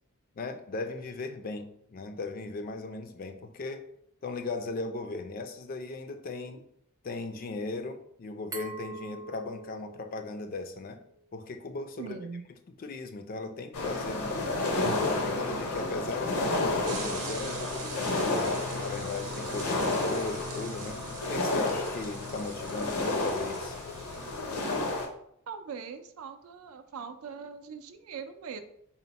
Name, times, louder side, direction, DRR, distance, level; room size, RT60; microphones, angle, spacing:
voice 1, 0.4-3.8 4.2-6.6 7.0-11.0 11.3-12.2 12.8-14.6 14.9-21.0 21.3-23.8, left 3 dB, 40° left, 7 dB, 0.4 m, -37 dB
Glass, 8.5-11.3, right 3 dB, 15° right, 0.5 m, -44 dB
voice 2, 12.0-12.4 25.5-28.6, right 6 dB, 70° right, 8 dB, 0.4 m, -41 dB
sound 1, 13.7-25.1, left 2 dB, 80° left, 0.7 m, -31 dB
sound 2, 16.8-24.4, right 5 dB, 90° right, 0.8 m, -44 dB
4.2 x 2.0 x 3.9 m, 0.72 s
head